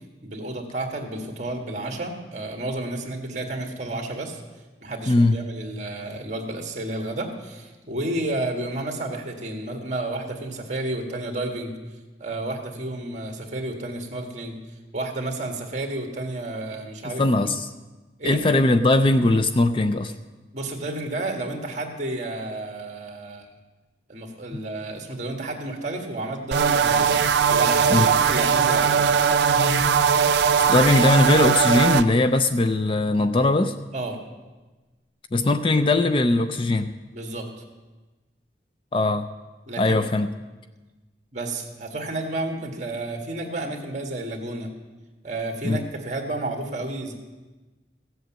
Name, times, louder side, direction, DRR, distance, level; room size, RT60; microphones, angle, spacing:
voice 1, 0.2-4.4 4.8-11.7 12.2-14.6 14.9-17.2 18.2-18.4 20.5-23.5 24.1-27.2 27.5-29.0 30.7-30.8 33.9-34.2 37.1-37.5 39.7-40.0 41.3-44.7 45.2-47.1, right 2 dB, 40° right, 3 dB, 1.8 m, -31 dB
voice 2, 5.1-5.4 17.2-17.7 18.2-20.1 27.9-28.1 29.6-29.9 30.7-33.7 35.3-36.9 38.9-39.3 39.8-40.3 45.6-45.8, left 2 dB, 30° left, 9 dB, 0.4 m, -20 dB
sound 1, 26.5-32.0, right 7 dB, 75° right, 0.5 m, -19 dB
15.5 x 8.0 x 7.4 m, 1.2 s
head